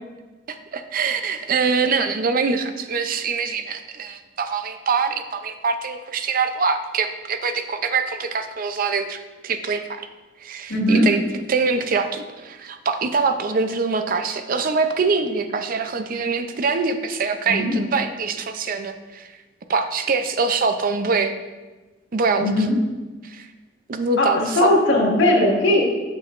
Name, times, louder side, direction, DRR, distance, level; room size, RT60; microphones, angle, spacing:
voice 1, 0.5-9.8 10.4-11.2 11.5-19.3 19.7-21.3 22.1-22.5 23.2-23.5 23.9-24.7, right 4 dB, 50° right, 8 dB, 0.5 m, -24 dB
voice 2, 10.7-11.0 17.4-17.7 22.4-22.7 24.2-25.8, left 1 dB, 90° left, -3 dB, 1.7 m, -18 dB
8.4 x 6.2 x 2.5 m, 1.2 s
head